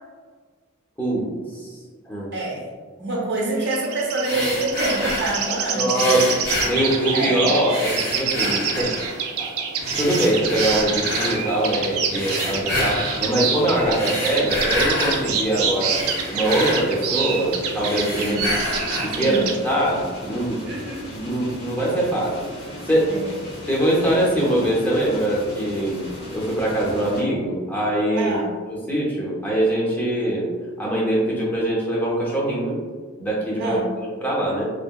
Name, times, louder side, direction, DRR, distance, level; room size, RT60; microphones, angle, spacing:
voice 1, 2.3-2.6 3.0-6.2 7.1-7.5 18.2-18.5 19.1-19.5 20.6-21.1 23.1-23.3 28.1-28.5 33.6-33.9, right 2 dB, 55° right, -3 dB, 0.7 m, -26 dB
sound 1, 3.6-19.6, right 6 dB, 85° right, 0.4 m, -27 dB
sound 2, 4.2-5.5 5.9-7.3 7.7-9.2 9.8-11.4 12.1-13.2 13.8-15.2 15.6-17.5 17.8-19.2, left 1 dB, 85° left, 1.5 m, -28 dB
voice 2, 5.7-8.9 9.4-9.5 10.0-16.0 16.3-18.4 19.0-20.6 21.1-22.4 22.9-23.2 23.7-26.1 26.3-28.3 28.7-30.5 30.8-32.8 33.2-34.7, right 1 dB, 10° left, -5 dB, 0.5 m, -23 dB
sound 3, 9.8-27.2, left 1 dB, 50° left, 0.8 m, -37 dB
2.8 x 2.7 x 2.2 m, 1.5 s
head